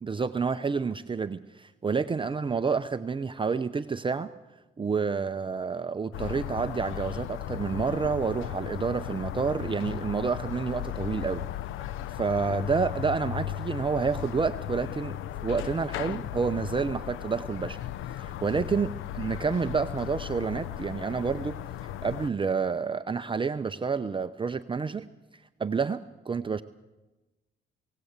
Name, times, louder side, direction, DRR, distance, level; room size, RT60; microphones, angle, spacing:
voice 1, 0.0-4.3 4.8-11.4 12.1-15.1 15.4-17.8 18.2-21.6 22.0-25.1 25.6-26.6, right 5 dB, 25° right, 9 dB, 0.6 m, -29 dB
sound 1, 6.1-22.3, left 12 dB, 85° left, 0.6 m, -36 dB
20.5 x 17.5 x 8.1 m, 1.1 s
cardioid pair, 90°, 20 cm